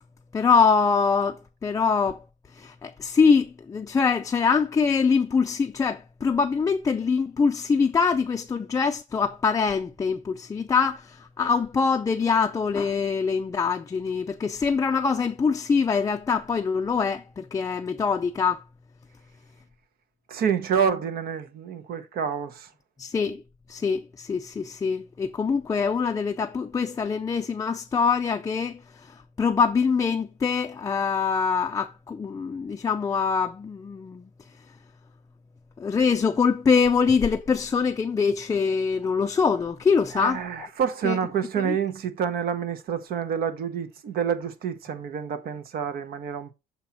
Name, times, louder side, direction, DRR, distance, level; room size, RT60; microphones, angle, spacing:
voice 1, 0.3-2.2 2.5-18.6 23.0-23.4 23.7-34.2 35.8-40.7 41.0-41.2 41.6-41.8, left 5 dB, 20° left, 0.4 m, -24 dB
voice 2, 20.3-22.7 40.1-46.5, right 7 dB, 60° right, 0.9 m, -28 dB
7.0 x 2.9 x 5.7 m
cardioid pair, 110°, 17 cm